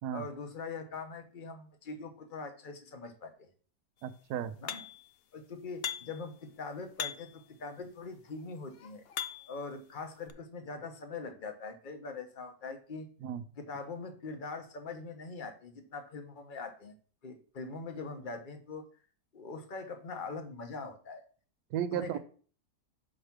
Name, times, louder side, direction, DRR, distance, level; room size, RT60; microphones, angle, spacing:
voice 1, 0.1-3.5 4.6-4.8 5.3-9.0 9.5-13.1 13.6-16.9 17.2-18.8 19.3-21.2 21.9-22.2, left 4 dB, 35° left, 6 dB, 1.1 m, -42 dB
voice 2, 4.0-4.6 13.2-13.4 21.7-22.2, right 10 dB, 75° right, 10 dB, 1.2 m, -34 dB
sound 1, 4.7-5.1 5.8-6.3 7.0-7.4 8.2-9.6 10.3-10.4, left 8 dB, 85° left, 0.5 m, -39 dB
6.4 x 4.9 x 5.9 m, 0.43 s
omnidirectional pair, 1.8 m